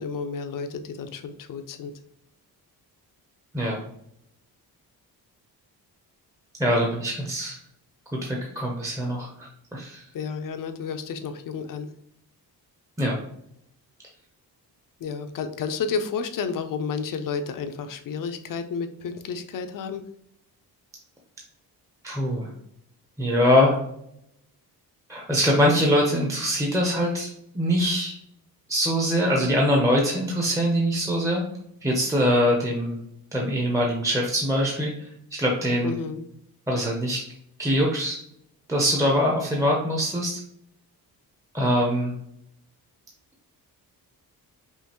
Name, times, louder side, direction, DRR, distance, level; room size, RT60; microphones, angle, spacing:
voice 1, 0.0-1.9 10.1-11.9 15.0-20.0 35.8-36.2, left 5 dB, 60° left, 9 dB, 0.6 m, -31 dB
voice 2, 6.6-7.6 8.2-10.0 13.0-13.2 22.0-22.5 23.2-23.8 25.1-27.3 27.5-28.1 28.7-31.4 31.8-33.0 33.3-34.9 35.4-35.9 36.7-37.2 37.6-38.2 38.7-40.4 41.5-42.1, equal, 10° right, -2 dB, 0.7 m, -23 dB
5.5 x 2.5 x 2.9 m, 0.72 s
wide cardioid pair, 155°, 39 cm